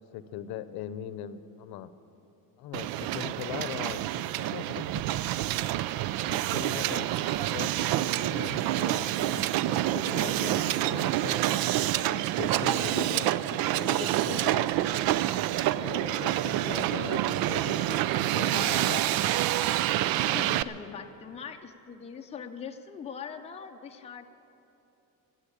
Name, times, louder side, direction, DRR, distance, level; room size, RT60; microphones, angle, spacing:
voice 1, 0.1-1.9 2.6-5.0 5.6-5.7 6.3-7.1 7.4-11.4 12.0-14.7 15.7-19.3, left 10 dB, 85° left, 13 dB, 0.8 m, -40 dB
Hiss, 2.7-20.6, right 14 dB, 75° right, 0.5 m, -27 dB
voice 2, 20.1-24.3, left 6 dB, 15° left, 4 dB, 0.5 m, -41 dB
17.0 x 7.9 x 10.0 m, 2.9 s
cardioid pair, 175°, 36 cm